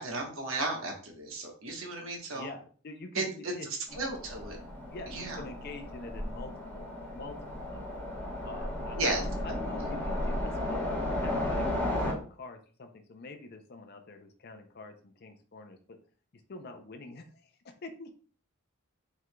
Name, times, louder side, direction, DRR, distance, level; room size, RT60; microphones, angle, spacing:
voice 1, 0.0-2.5 3.1-3.5 4.0-4.6 5.1-5.4 8.9-9.2 9.8-9.9, right 2 dB, 65° right, 1 dB, 1.1 m, -34 dB
voice 2, 2.3-4.0 4.9-7.9 8.4-10.9 11.2-15.8 16.5-17.5 17.8-18.1, left 3 dB, 45° left, 6 dB, 0.5 m, -46 dB
Train, 3.9-12.1, left 1 dB, 10° left, 1.1 m, -34 dB
4.7 x 3.6 x 2.2 m, 0.42 s
head